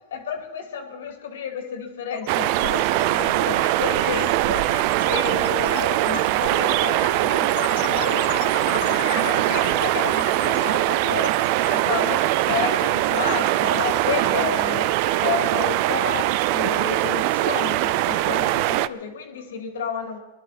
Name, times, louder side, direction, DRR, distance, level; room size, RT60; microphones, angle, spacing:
voice 1, 0.1-4.7 5.0-8.3 8.6-11.4 11.6-14.9 15.2-20.2, left 6 dB, 85° left, 5 dB, 2.6 m, -31 dB
sound 1, 1.0-1.2 1.5-15.8, left 10 dB, 60° left, 1.5 m, -37 dB
sound 2, 2.3-18.9, right 15 dB, 55° right, 0.5 m, -22 dB
sound 3, 9.5-16.5, right 4 dB, 90° right, 1.3 m, -45 dB
23.0 x 11.5 x 4.3 m, 1.1 s
supercardioid pair, 135°, 0 cm